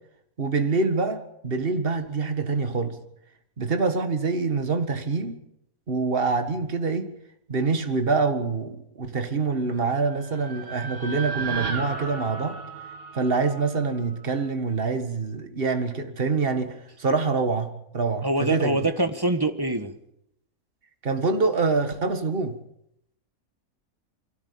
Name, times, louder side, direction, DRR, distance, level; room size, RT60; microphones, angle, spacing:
voice 1, 0.4-3.0 3.6-5.4 5.9-7.1 7.5-12.6 13.1-18.8 21.0-22.5, right 4 dB, 40° right, 2.0 m, -25 dB
sound 1, 10.0-14.1, right 5 dB, 70° right, 2.6 m, -34 dB
voice 2, 18.2-19.9, right 2 dB, 15° right, 1.6 m, -24 dB
24.5 x 17.0 x 8.6 m
omnidirectional pair, 1.5 m